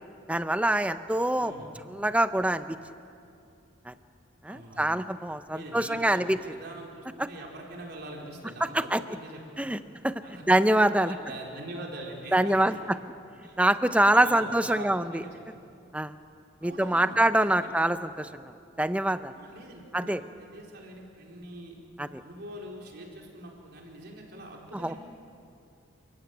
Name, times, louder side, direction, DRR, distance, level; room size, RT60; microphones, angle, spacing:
voice 1, 0.3-1.5 1.9-2.8 3.9-4.0 4.4-6.4 8.6-9.0 9.6-9.8 10.0-10.1 10.5-11.1 12.3-12.8 13.6-15.2 15.9-16.1 16.6-18.3 18.8-19.3 19.9-20.2 22.0-22.2 24.7-24.9, right 1 dB, 5° right, 11 dB, 0.6 m, -24 dB
voice 2, 1.3-1.7 4.5-4.9 5.5-9.8 10.2-10.4 11.0-12.8 13.4-13.6 14.0-15.6 16.6-17.2 17.5-18.0 19.3-21.7 22.2-25.0, right 1 dB, 55° right, -1 dB, 4.4 m, -43 dB
29.0 x 15.5 x 9.4 m, 2.5 s
head